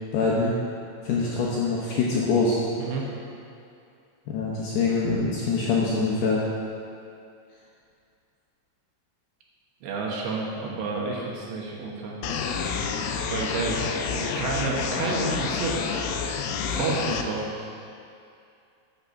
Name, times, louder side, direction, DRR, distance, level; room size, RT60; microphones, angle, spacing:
voice 1, 0.1-0.5 1.0-2.6 4.3-6.4, left 4 dB, 75° left, -4 dB, 2.5 m, -24 dB
voice 2, 9.8-12.2 13.3-15.8 16.6-17.4, right 3 dB, 70° right, -3 dB, 3.3 m, -30 dB
sound 1, 12.2-17.2, left 6 dB, 90° left, 3.3 m, -29 dB
11.0 x 6.2 x 6.8 m, 2.5 s
omnidirectional pair, 5.7 m